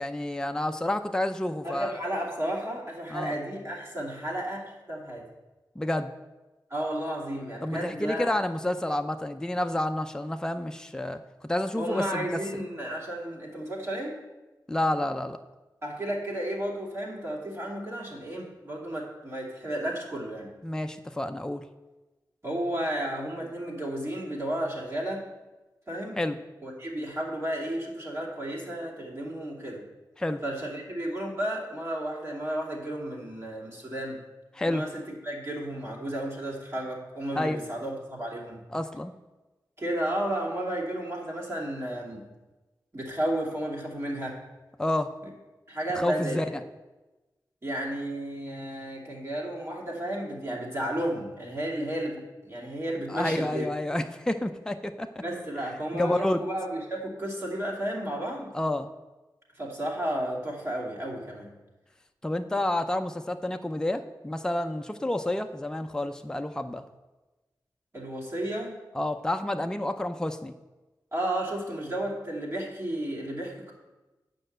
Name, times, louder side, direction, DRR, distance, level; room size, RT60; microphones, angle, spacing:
voice 1, 0.0-1.9 3.1-3.4 5.8-6.1 7.6-12.6 14.7-15.4 20.6-21.6 26.2-26.4 30.2-30.4 34.5-34.8 37.3-37.6 38.7-39.1 44.8-45.1 46.0-46.5 53.1-55.2 55.9-56.4 58.5-58.9 62.2-66.8 68.9-70.5, left 1 dB, 10° left, 7 dB, 0.6 m, -29 dB
voice 2, 1.6-5.2 6.7-8.4 11.8-14.2 15.8-20.5 22.4-25.2 25.9-26.2 26.6-29.8 30.4-34.2 34.6-34.9 35.2-38.6 39.8-42.3 42.9-44.4 45.7-46.4 47.6-53.7 55.2-58.5 59.5-61.5 67.9-68.7 71.1-73.7, right 1 dB, 35° right, -3 dB, 2.7 m, -33 dB
8.8 x 5.4 x 7.9 m, 1.1 s
wide cardioid pair, 70°, 8 cm